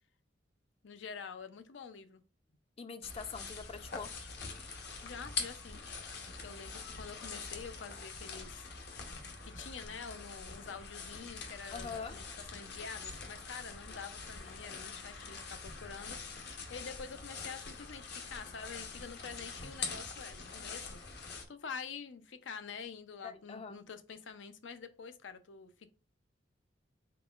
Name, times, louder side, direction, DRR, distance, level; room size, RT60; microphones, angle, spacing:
voice 1, 0.8-2.2 5.0-5.9 6.4-8.7 9.4-12.3 12.5-16.2 16.7-21.0 21.5-25.9, left 6 dB, 85° left, 10 dB, 0.5 m, -47 dB
voice 2, 2.8-4.1 11.7-12.2 23.2-23.8, left 5 dB, 30° left, 10 dB, 0.4 m, -43 dB
sound 1, 3.0-21.4, left 4 dB, 60° left, 0.9 m, -44 dB
3.9 x 3.8 x 2.3 m, 0.34 s
head